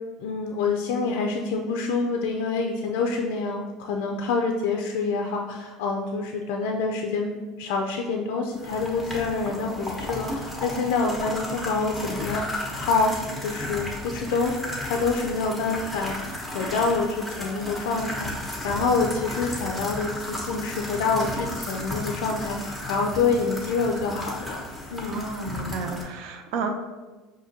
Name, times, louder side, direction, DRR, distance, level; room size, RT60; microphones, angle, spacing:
voice 1, 0.2-13.1 13.4-14.5 14.8-16.2 16.5-24.6 24.9-25.2, left 4 dB, 85° left, 2 dB, 0.3 m, -27 dB
sound 1, 8.6-26.0, left 1 dB, ahead, 0.8 m, -34 dB
voice 2, 25.0-26.7, right 4 dB, 70° right, 5 dB, 0.5 m, -32 dB
5.0 x 2.6 x 2.7 m, 1.3 s
cardioid pair, 135°, 0 cm